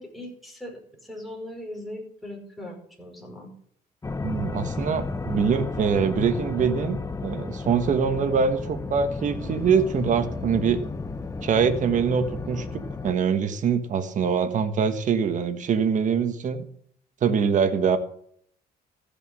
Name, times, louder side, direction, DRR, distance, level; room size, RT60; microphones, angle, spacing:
voice 1, 0.0-3.5, left 1 dB, ahead, 1 dB, 5.3 m, -39 dB
sound 1, 4.0-13.2, left 3 dB, 20° left, 0.9 m, -33 dB
voice 2, 4.2-10.8 11.4-12.7 13.0-16.6 17.2-18.0, right 6 dB, 50° right, 9 dB, 1.4 m, -24 dB
15.0 x 6.9 x 7.6 m, 0.64 s
cardioid pair, 110°, 17 cm